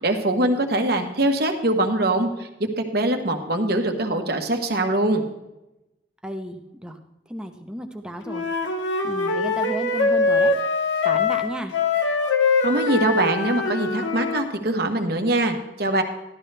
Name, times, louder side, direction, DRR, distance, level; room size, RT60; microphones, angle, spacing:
voice 1, 0.0-2.5 2.9-5.2 12.6-16.0, right 1 dB, 55° right, 5 dB, 1.2 m, -23 dB
voice 2, 6.2-7.0 7.3-8.5 9.0-10.5 11.0-11.7, equal, 5° right, 5 dB, 0.7 m, -33 dB
Wind instrument woodwind instrument, 8.3-14.5, left 3 dB, 85° left, 1.1 m, -23 dB
13.5 x 11.5 x 3.3 m, 0.95 s
head